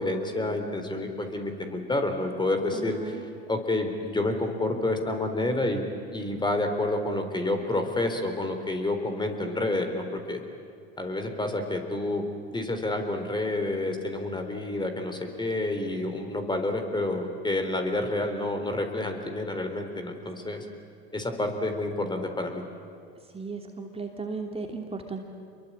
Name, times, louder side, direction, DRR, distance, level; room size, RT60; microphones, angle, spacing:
voice 1, 0.0-3.2 3.5-5.8 6.1-10.4 11.0-12.2 12.5-20.6 21.1-22.6, left 2 dB, 15° left, 6 dB, 4.0 m, -29 dB
voice 2, 2.7-3.2 20.4-20.6 23.3-25.2, right 4 dB, 20° right, 2 dB, 2.9 m, -36 dB
28.0 x 22.5 x 8.9 m, 2.3 s
hypercardioid pair, 80°, 30 cm